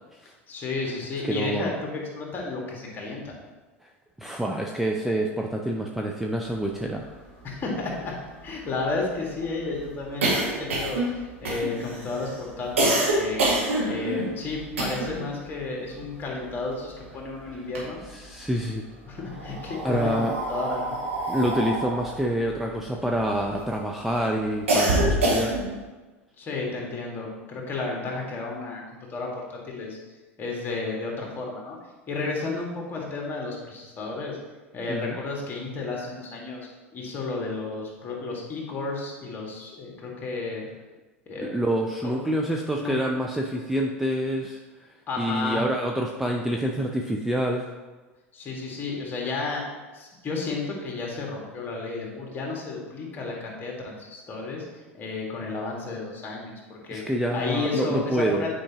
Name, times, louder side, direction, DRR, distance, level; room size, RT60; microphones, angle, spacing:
voice 1, 0.5-3.3 7.4-8.1 8.4-13.5 13.9-18.0 19.1-21.0 26.4-30.0 30.4-31.8 32.1-34.4 34.7-40.7 41.3-41.5 42.0-42.3 42.8-43.0 45.1-45.6 48.3-49.6 49.9-54.6 54.9-57.0 57.3-58.5, left 3 dB, 30° left, -2 dB, 1.9 m, -32 dB
voice 2, 1.2-1.7 3.8-3.9 4.2-7.0 18.1-18.9 19.8-20.3 21.3-25.5 34.9-35.2 41.5-47.6 56.9-58.5, right 1 dB, 5° right, 0 dB, 0.5 m, -27 dB
sound 1, 7.1-7.2 7.4-7.5 7.8-15.3 15.6-17.2 17.5-18.4 19.2-23.7 24.1-25.8, right 1 dB, 75° right, 1.9 m, -27 dB
8.6 x 4.9 x 2.9 m, 1.2 s
figure-of-eight pair, 80°, 7 cm